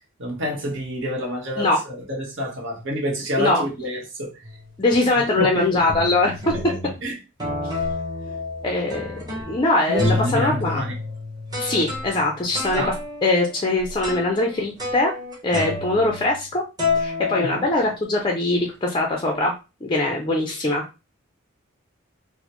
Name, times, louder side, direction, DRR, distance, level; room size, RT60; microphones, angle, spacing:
voice 1, 0.2-4.3 5.4-5.8 6.5-6.6 7.0-7.1 7.7-7.8 9.9-10.9 12.7-12.9 17.4-17.6, equal, 60° right, 1.3 m, -28 dB
sound 1, 4.4-4.8 5.4-5.5 5.9-7.0 7.4-9.6 10.0-16.5 16.8-18.2, left 3 dB, 20° right, 1.0 m, -29 dB
voice 2, 4.8-6.4 8.6-10.8 11.6-12.9 13.2-15.1 15.4-16.6 16.9-19.5 19.8-20.8, left 2 dB, 25° left, 0.5 m, -22 dB
3.9 x 2.1 x 3.0 m
head